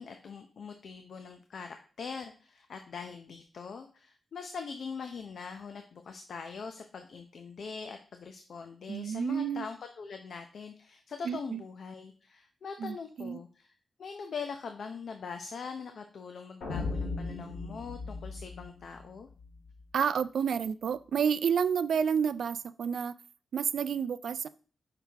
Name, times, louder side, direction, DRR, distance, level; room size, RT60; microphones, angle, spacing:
voice 1, 0.0-19.3, left 5 dB, 60° left, 0.7 m, -42 dB
voice 2, 8.9-9.7 11.2-11.6 12.8-13.4 19.9-23.1 23.5-24.5, right 7 dB, 75° right, 0.4 m, -30 dB
sound 1, 16.6-19.7, left 3 dB, 80° left, 2.6 m, -37 dB
6.5 x 5.7 x 3.4 m
wide cardioid pair, 160°, 0 cm